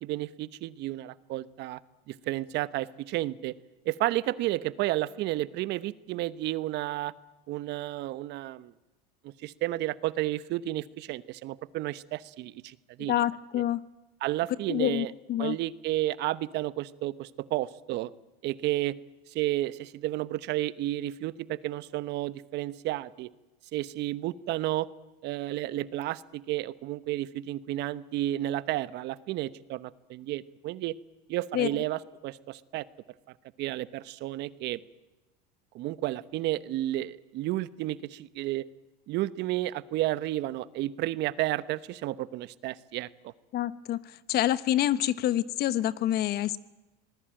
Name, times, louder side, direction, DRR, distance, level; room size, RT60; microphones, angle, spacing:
voice 1, 0.0-1.8 2.1-3.5 3.8-7.1 7.5-8.7 9.2-13.2 13.5-13.6 14.2-15.1 15.4-18.1 18.4-19.0 19.3-23.3 23.7-24.9 25.2-30.9 31.3-32.9 33.6-34.8 35.7-38.7 39.1-43.3, right 15 dB, 55° right, 16 dB, 1.1 m, -32 dB
voice 2, 13.1-13.8 14.7-15.6 31.5-31.7 43.5-44.0 44.3-46.6, left 12 dB, 50° left, 16 dB, 1.1 m, -27 dB
25.5 x 20.0 x 9.0 m, 1.1 s
supercardioid pair, 110°, 21 cm